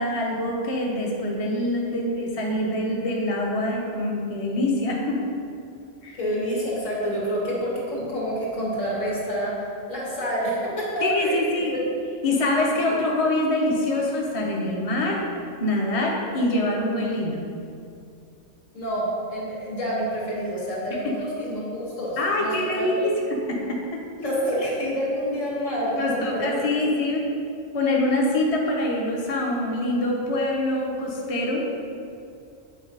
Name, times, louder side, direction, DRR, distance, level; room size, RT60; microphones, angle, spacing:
voice 1, 0.0-5.2 6.0-6.2 11.0-11.7 12.2-15.2 15.6-17.5 22.2-23.1 23.5-24.0 26.0-27.3 27.7-31.7, left 1 dB, 30° left, -2 dB, 1.0 m, -25 dB
voice 2, 6.2-11.8 12.7-13.0 18.7-23.1 24.2-26.8, equal, 90° left, -6 dB, 2.5 m, -28 dB
8.7 x 4.4 x 5.4 m, 2.5 s
omnidirectional pair, 1.3 m